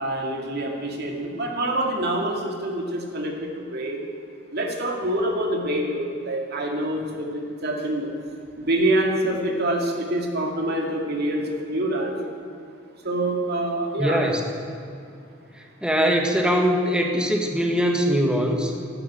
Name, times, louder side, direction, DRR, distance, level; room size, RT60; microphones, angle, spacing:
voice 1, 0.0-4.1 4.5-8.1 8.6-12.2 13.0-14.2, right 1 dB, 55° right, 1 dB, 2.4 m, -26 dB
voice 2, 14.0-14.4 15.8-18.7, equal, 5° right, 2 dB, 1.7 m, -21 dB
12.0 x 12.0 x 9.0 m, 2.5 s
head